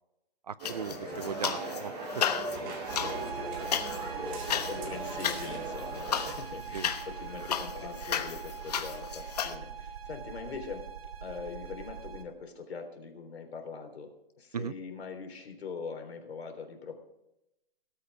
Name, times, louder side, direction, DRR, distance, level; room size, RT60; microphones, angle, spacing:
voice 1, 0.5-2.2 6.7-6.9 14.5-14.7, right 7 dB, 40° right, 19 dB, 0.4 m, -37 dB
sound 1, 0.6-1.8 2.1-9.5, left 8 dB, 40° left, 1.1 m, -34 dB
sound 2, 0.6-6.3, right 2 dB, 20° right, 2.2 m, -39 dB
voice 2, 2.9-10.9 11.2-14.1 14.4-17.0, left 5 dB, 90° left, 4 dB, 3.8 m, -43 dB
sound 3, 2.9-12.2, right 7 dB, 70° right, 2.2 m, -41 dB
18.5 x 8.4 x 4.7 m, 0.88 s
hypercardioid pair, 170°, 31 cm